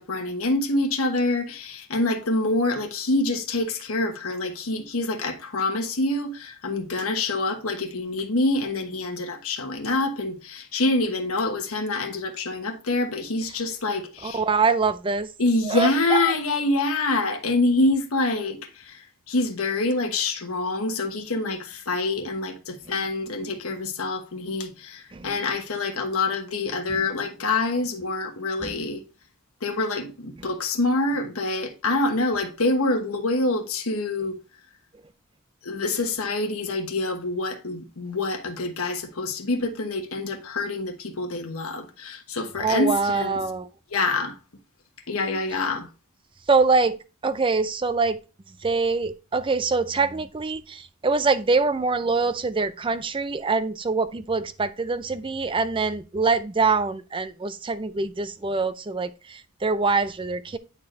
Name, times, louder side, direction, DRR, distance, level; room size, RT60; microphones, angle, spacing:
voice 1, 0.0-14.4 15.4-19.0 19.3-29.0 29.6-34.4 35.6-43.4 43.9-44.3 45.1-45.9, left 2 dB, 75° left, 1.2 m, -26 dB
voice 2, 14.2-15.3 15.6-16.2 25.1-25.3 28.6-28.7 42.6-43.7 46.5-48.2 48.6-60.6, right 4 dB, 25° right, 0.4 m, -24 dB
9.5 x 4.4 x 3.1 m
head